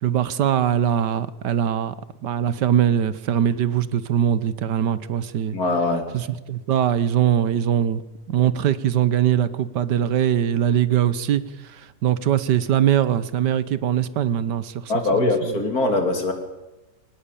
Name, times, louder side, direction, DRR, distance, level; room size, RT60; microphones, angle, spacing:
voice 1, 0.0-1.9 2.2-5.6 6.1-8.0 8.3-11.4 11.7-14.9 15.2-15.5, right 10 dB, 80° right, 1.6 m, -21 dB
voice 2, 5.5-6.0 14.9-16.3, left 2 dB, 60° left, 3.5 m, -22 dB
23.5 x 19.0 x 8.6 m
omnidirectional pair, 1.8 m